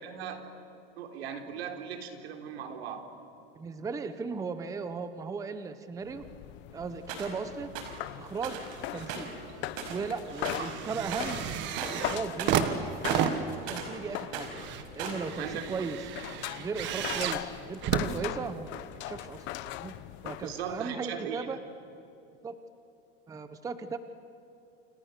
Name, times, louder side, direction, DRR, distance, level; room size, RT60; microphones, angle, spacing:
voice 1, 0.0-0.4 1.0-3.1 10.6-10.7 15.4-15.6 20.4-21.6, right 8 dB, 85° right, 5 dB, 3.7 m, -38 dB
voice 2, 3.6-6.2 6.7-7.7 8.2-8.6 8.9-9.3 9.9-11.4 11.9-13.3 13.7-14.5 14.9-16.0 16.5-19.5 19.8-19.9 20.2-21.6 22.4-22.5 23.3-24.0, right 5 dB, 10° right, 10 dB, 0.8 m, -37 dB
sound 1, 6.0-20.9, left 14 dB, 35° left, 0.9 m, -41 dB
sound 2, 7.1-7.4 7.7-8.0 8.4-8.7 9.0-10.1 10.4-10.8 11.0-11.4 11.7-14.0 14.2-15.3, right 6 dB, 55° right, 5.4 m, -37 dB
sound 3, 8.4-9.1 9.5-18.9 19.7-19.8, right 9 dB, 35° right, 1.6 m, -34 dB
29.0 x 28.5 x 6.7 m, 2.9 s
supercardioid pair, 160°, 31 cm